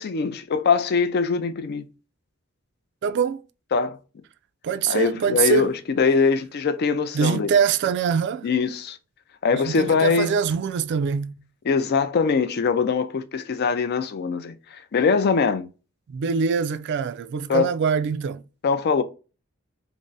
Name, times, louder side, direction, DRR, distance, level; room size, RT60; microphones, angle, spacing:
voice 1, 0.0-1.8 3.7-4.0 4.9-7.5 8.4-9.0 9.4-10.3 11.7-15.7 17.5-17.7 18.6-19.0, left 5 dB, 50° left, 0.4 m, -22 dB
voice 2, 3.0-3.4 4.6-5.7 7.1-8.5 9.5-11.3 16.1-18.4, right 6 dB, 55° right, 0.3 m, -23 dB
3.6 x 2.0 x 3.9 m
head